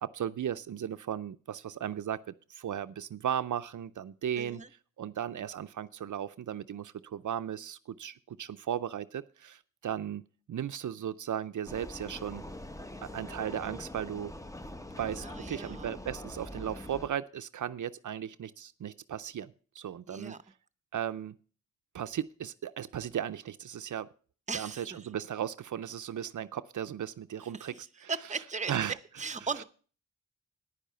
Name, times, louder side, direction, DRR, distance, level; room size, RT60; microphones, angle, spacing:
voice 1, 0.0-4.6 5.0-10.2 10.5-12.4 13.0-14.3 15.0-20.3 20.9-21.3 21.9-24.1 24.5-28.1 28.7-29.0, right 9 dB, 75° right, 12 dB, 0.5 m, -36 dB
voice 2, 4.4-4.7 15.2-15.9 20.1-20.4 24.5-25.0 27.4-28.7 29.2-29.6, right 4 dB, 25° right, 11 dB, 0.7 m, -38 dB
Vehicle, 11.6-17.1, left 1 dB, 10° left, 0.7 m, -43 dB
10.0 x 10.0 x 5.6 m, 0.40 s
wide cardioid pair, 110°, 31 cm